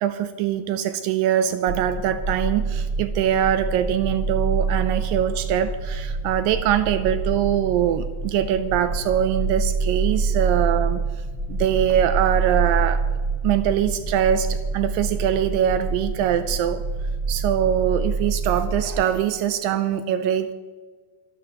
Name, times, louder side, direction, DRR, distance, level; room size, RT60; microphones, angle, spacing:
voice 1, 0.0-11.0 11.5-13.0 13.4-16.8 17.3-20.5, right 10 dB, 80° right, 11 dB, 2.2 m, -23 dB
sound 1, 1.7-19.0, right 4 dB, 35° right, 3.7 m, -26 dB
25.0 x 11.5 x 3.0 m, 1.4 s
omnidirectional pair, 4.3 m